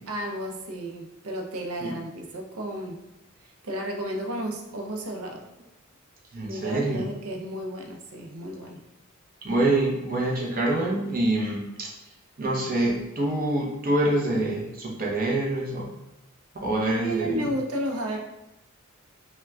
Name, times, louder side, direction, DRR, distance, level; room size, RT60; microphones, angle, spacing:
voice 1, 0.1-3.0 3.4-5.4 6.5-8.8 17.0-18.2, right 1 dB, 85° right, 2 dB, 0.6 m, -33 dB
voice 2, 6.3-7.1 9.4-11.9 12.4-15.9 16.5-17.5, right 1 dB, 40° right, -3 dB, 0.7 m, -26 dB
5.7 x 2.2 x 2.3 m, 0.93 s
head